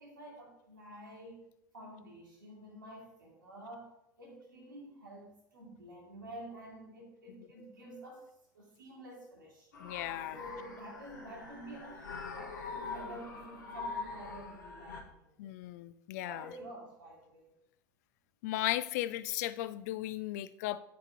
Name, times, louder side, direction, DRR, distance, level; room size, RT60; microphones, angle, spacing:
voice 1, 0.0-1.5 1.7-9.7 10.3-15.4 16.2-17.6, right 1 dB, 80° right, -3 dB, 2.2 m, -49 dB
sound 1, 9.7-15.0, left 4 dB, 70° left, 1.1 m, -43 dB
voice 2, 9.8-10.4 15.4-16.4 18.4-20.8, left 15 dB, 55° left, 15 dB, 0.4 m, -36 dB
7.6 x 3.7 x 4.3 m, 0.79 s
figure-of-eight pair, 75°, 11 cm